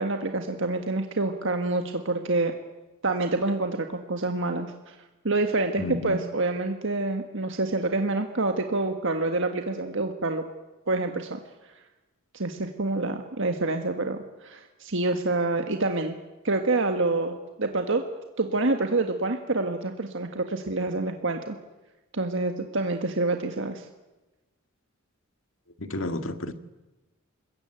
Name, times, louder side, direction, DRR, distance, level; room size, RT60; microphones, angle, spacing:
voice 1, 0.0-2.5 3.0-5.0 5.2-10.4 10.9-11.4 12.3-16.1 16.4-18.0 18.4-21.5 22.1-23.9, right 2 dB, 65° right, 1.6 m, -27 dB
voice 2, 5.8-6.2 25.8-26.5, left 1 dB, 70° left, 1.8 m, -31 dB
26.5 x 21.5 x 9.1 m
head